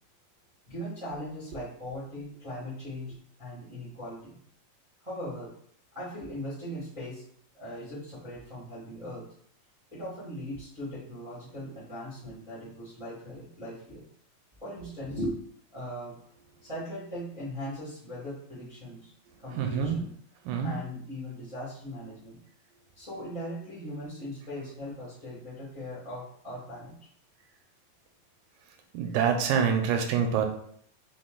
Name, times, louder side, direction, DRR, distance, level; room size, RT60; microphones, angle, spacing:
voice 1, 0.7-3.1 3.4-4.4 5.0-5.5 5.9-7.2 7.5-9.3 9.9-14.0 14.6-15.4 15.7-16.2 16.6-19.1 19.4-20.1 20.6-22.4 22.9-26.9, equal, 40° right, -8 dB, 0.4 m, -39 dB
voice 2, 19.6-20.0 20.5-20.8 28.9-30.5, right 7 dB, 80° right, 4 dB, 2.1 m, -26 dB
5.6 x 2.3 x 3.8 m, 0.64 s
omnidirectional pair, 4.0 m